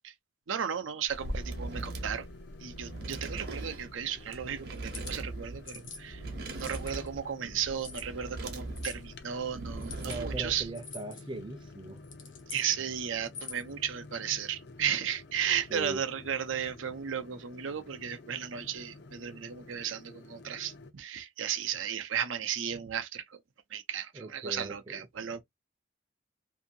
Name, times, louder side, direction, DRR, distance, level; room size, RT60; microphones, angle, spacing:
voice 1, 0.5-2.3 2.6-6.2 6.5-10.7 12.5-23.4 23.7-25.4, right 8 dB, 90° right, 0.6 m, -34 dB
sound 1, 1.1-10.7, right 2 dB, 55° right, 0.8 m, -40 dB
sound 2, 1.2-20.9, left 2 dB, 55° left, 0.5 m, -51 dB
sound 3, 4.7-5.1 5.7-6.0 6.5-7.1 7.8-8.1 8.7-9.0 9.8-10.2 10.7-11.2 12.0-12.7 13.2-13.7, left 5 dB, 80° left, 1.1 m, -44 dB
voice 2, 10.0-12.0 15.7-16.0 24.1-25.0, right 2 dB, 25° right, 0.5 m, -40 dB
2.7 x 2.6 x 2.6 m
head